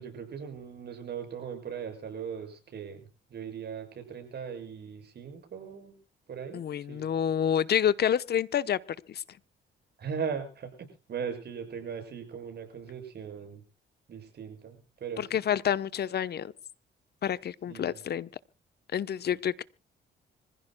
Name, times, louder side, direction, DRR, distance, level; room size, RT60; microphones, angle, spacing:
voice 1, 0.0-3.1 3.3-6.0 6.3-7.2 10.0-13.6 14.1-15.4 17.7-18.0, right 7 dB, 55° right, 7.1 m, -39 dB
voice 2, 6.5-8.8 9.1-9.2 15.2-16.5 17.2-18.3 18.9-19.6, left 9 dB, 55° left, 0.9 m, -28 dB
26.0 x 15.5 x 2.2 m
cardioid pair, 90°, 20 cm